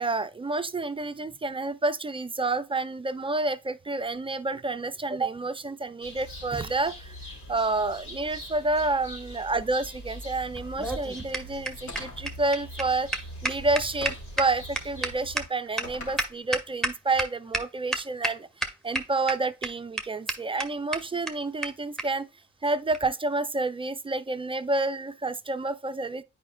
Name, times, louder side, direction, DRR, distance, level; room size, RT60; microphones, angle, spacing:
voice 1, 0.0-7.2 7.5-13.1 13.4-22.3 22.6-26.2, right 2 dB, 20° right, 0.3 m, -29 dB
sound 1, 6.0-15.5, equal, 85° left, 3.9 m, -43 dB
sound 2, 10.5-17.2 17.5-17.6 17.9-18.3 18.6-19.3 19.6-19.7 20.0-20.1 20.3-20.4 20.6-20.7 20.9-21.0 21.3-21.4 21.6-21.7 22.0-22.1 22.9-23.1, right 1 dB, ahead, 1.0 m, -29 dB
sound 3, 11.9-12.4 14.0-14.4 15.8-16.3, left 2 dB, 65° left, 2.9 m, -40 dB
8.8 x 4.9 x 2.2 m
cardioid pair, 90°, 30 cm